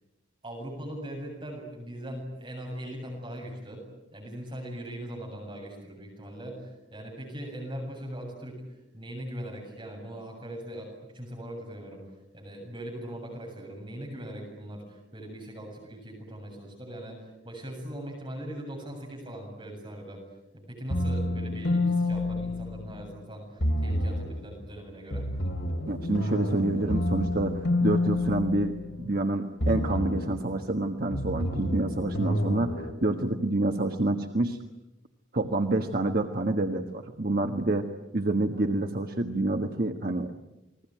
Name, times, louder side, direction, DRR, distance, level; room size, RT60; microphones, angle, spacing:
voice 1, 0.4-3.8 4.1-8.6 8.9-12.0 12.3-20.2 20.7-25.3, right 1 dB, 25° right, 0 dB, 7.5 m, -40 dB
sound 1, 20.9-23.2 23.6-24.4 25.1-29.2 29.6-30.4 31.1-32.9, left 1 dB, 80° left, 3.4 m, -29 dB
voice 2, 25.9-34.6 35.3-37.9 38.1-40.3, right 2 dB, 50° right, 4 dB, 1.5 m, -28 dB
29.5 x 21.5 x 9.2 m, 0.96 s
head